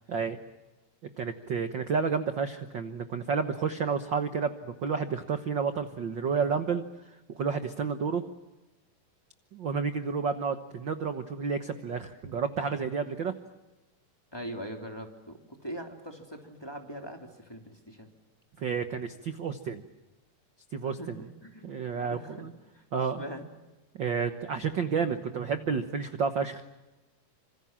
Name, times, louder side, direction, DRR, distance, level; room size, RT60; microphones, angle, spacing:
voice 1, 0.1-0.4 1.2-6.8 7.3-8.2 9.5-13.3 18.6-19.8 20.7-21.1 21.6-22.5 22.9-23.2 23.9-26.7, right 5 dB, 70° right, 8 dB, 1.1 m, -30 dB
voice 2, 14.3-18.1 20.8-22.5 22.7-23.5, equal, 10° left, 3 dB, 2.7 m, -42 dB
26.5 x 26.5 x 7.4 m, 1.1 s
omnidirectional pair, 3.9 m